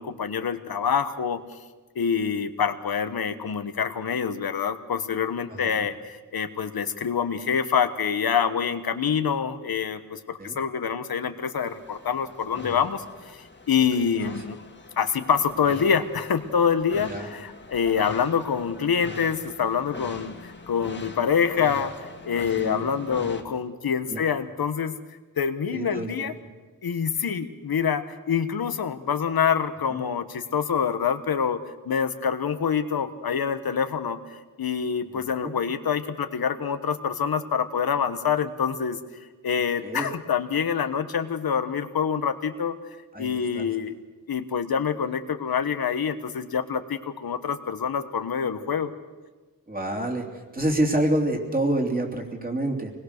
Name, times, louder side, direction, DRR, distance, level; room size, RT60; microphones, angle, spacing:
voice 1, 0.0-1.4 1.9-14.6 15.0-24.9 25.4-26.3 26.8-39.0 39.4-42.7 43.2-43.9 44.3-48.9, left 7 dB, 90° left, 9 dB, 1.3 m, -26 dB
voice 2, 5.5-5.8 10.4-10.6 14.0-14.1 17.1-17.3 22.6-22.9 24.1-24.2 25.7-26.3 29.9-30.0 35.1-35.5 39.8-40.1 43.1-43.7 49.7-50.3 50.5-52.9, right 1 dB, 25° right, 2 dB, 3.1 m, -28 dB
sound 1, 11.6-23.4, left 3 dB, 30° left, 2.0 m, -42 dB
25.5 x 20.5 x 6.7 m, 1.3 s
wide cardioid pair, 135°, 35 cm